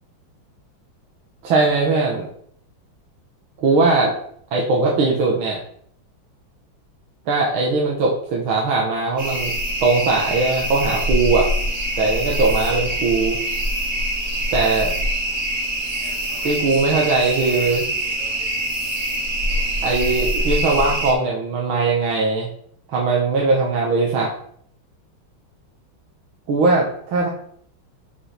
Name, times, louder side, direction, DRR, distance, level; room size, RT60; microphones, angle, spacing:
voice 1, 1.4-2.3 3.6-4.1 4.5-5.6 7.3-9.5 9.8-11.5 12.0-13.4 14.5-14.9 16.4-17.9 19.8-22.5 22.9-24.3 26.5-27.3, right 3 dB, 85° right, -2 dB, 2.2 m, -20 dB
sound 1, 9.2-21.1, equal, 35° right, 2.5 m, -24 dB
6.6 x 5.8 x 5.8 m, 0.64 s
omnidirectional pair, 2.2 m